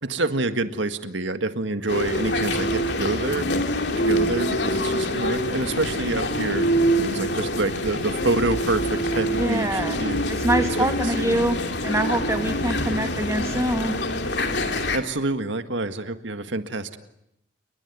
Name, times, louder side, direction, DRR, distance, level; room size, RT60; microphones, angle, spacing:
voice 1, 0.0-3.5 4.0-6.7 7.0-10.2 11.2-11.4 14.9-17.0, right 2 dB, 75° right, 9 dB, 1.8 m, -27 dB
sound 1, 1.9-15.0, equal, 60° left, 2.8 m, -25 dB
voice 2, 9.3-10.0 10.3-13.9, right 1 dB, 15° right, 6 dB, 2.0 m, -25 dB
29.0 x 21.5 x 9.4 m, 0.80 s
head